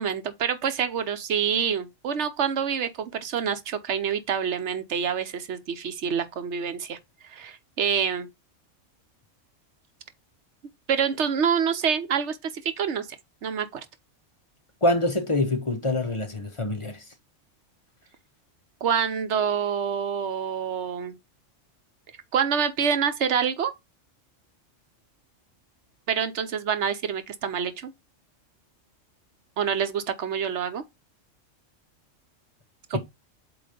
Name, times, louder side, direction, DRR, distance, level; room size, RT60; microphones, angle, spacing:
voice 1, 0.0-7.0 7.2-8.3 10.9-13.1 13.4-13.8 18.8-21.2 22.3-23.7 26.1-27.9 29.6-30.8 32.9-33.0, right 7 dB, 65° right, 1.1 m, -27 dB
voice 2, 14.8-17.0, left 2 dB, 25° left, 0.9 m, -25 dB
7.9 x 2.7 x 5.0 m
omnidirectional pair, 1.3 m